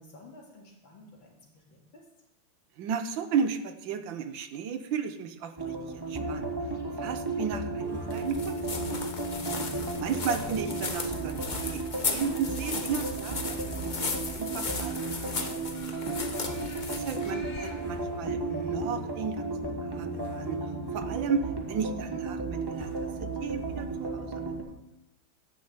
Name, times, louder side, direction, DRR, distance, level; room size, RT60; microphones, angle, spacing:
voice 1, 0.0-2.0, left 2 dB, 75° left, -1 dB, 3.3 m, -52 dB
voice 2, 2.8-6.5 7.0-8.9 10.0-15.5 16.9-20.6 20.9-22.9 23.2-24.4, right 6 dB, 75° right, 9 dB, 1.6 m, -34 dB
sound 1, 5.6-24.6, right 3 dB, 15° right, 1.4 m, -34 dB
sound 2, 8.1-18.0, left 4 dB, 35° left, 0.8 m, -36 dB
11.0 x 6.6 x 8.1 m, 0.90 s
omnidirectional pair, 2.1 m